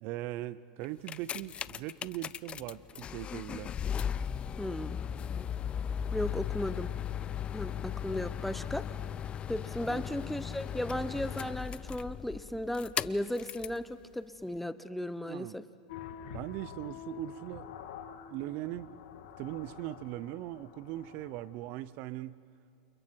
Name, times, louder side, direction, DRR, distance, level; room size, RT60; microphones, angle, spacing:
voice 1, 0.0-3.7 9.9-10.0 15.3-15.6 16.3-17.7 18.3-18.9 19.4-22.4, right 15 dB, 50° right, 18 dB, 0.6 m, -40 dB
sound 1, 0.8-13.8 14.6-14.7, left 8 dB, 30° left, 0.5 m, -37 dB
voice 2, 4.6-5.1 6.1-6.9 7.5-8.9 9.5-15.6, left 1 dB, 5° left, 13 dB, 0.8 m, -35 dB
sound 2, 15.9-21.8, left 7 dB, 70° left, 2.1 m, -47 dB
29.5 x 28.0 x 4.6 m, 2.5 s
hypercardioid pair, 105°, 4 cm